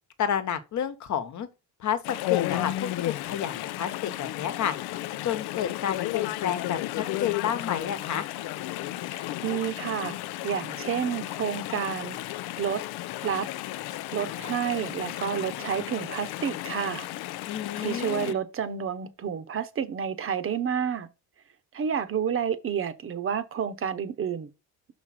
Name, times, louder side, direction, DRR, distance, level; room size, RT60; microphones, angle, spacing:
voice 1, 0.2-1.5 1.8-4.7 5.2-8.3 17.5-18.4, left 9 dB, 50° left, 1.2 m, -30 dB
Chatter / Stream, 2.0-18.3, left 15 dB, 80° left, 0.6 m, -33 dB
voice 2, 9.1-10.1 10.4-12.2 12.6-12.8 13.2-13.5 14.1-17.1 17.8-21.1 21.7-24.5, right 8 dB, 35° right, 0.9 m, -30 dB
6.0 x 5.1 x 4.2 m
cardioid pair, 135°, 37 cm